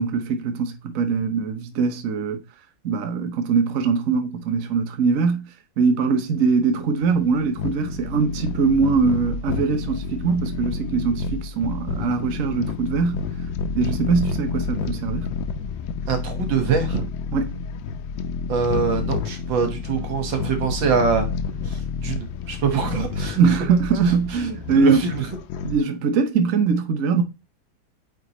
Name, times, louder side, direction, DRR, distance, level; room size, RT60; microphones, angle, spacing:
voice 1, 0.0-2.4 2.8-5.5 5.8-13.2 13.8-15.3 17.3-17.5 23.3-25.1 25.6-27.2, right 5 dB, 55° right, 1.1 m, -22 dB
sound 1, 6.4-25.8, left 5 dB, 80° left, 1.4 m, -29 dB
voice 2, 16.1-17.1 18.5-21.3 21.7-23.5 24.0-24.1 24.8-25.3, right 6 dB, 80° right, 2.1 m, -24 dB
9.0 x 3.6 x 3.0 m
omnidirectional pair, 2.1 m